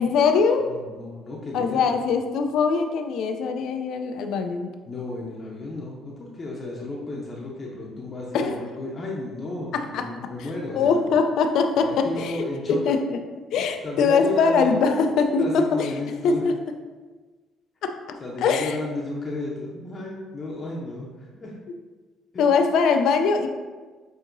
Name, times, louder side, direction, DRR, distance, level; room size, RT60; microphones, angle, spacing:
voice 1, 0.0-0.7 1.5-4.8 8.3-8.5 9.7-10.1 10.7-12.4 12.7-13.2 13.5-15.9 16.2-16.5 17.8-18.8 22.4-23.5, left 5 dB, 70° left, 6 dB, 0.4 m, -22 dB
voice 2, 0.6-2.0 4.9-11.1 11.8-12.8 13.8-14.7 15.4-16.5 18.2-21.5 22.3-22.5, left 2 dB, 35° left, -3 dB, 0.8 m, -33 dB
7.1 x 2.8 x 2.6 m, 1.3 s
cardioid pair, 100°, 0 cm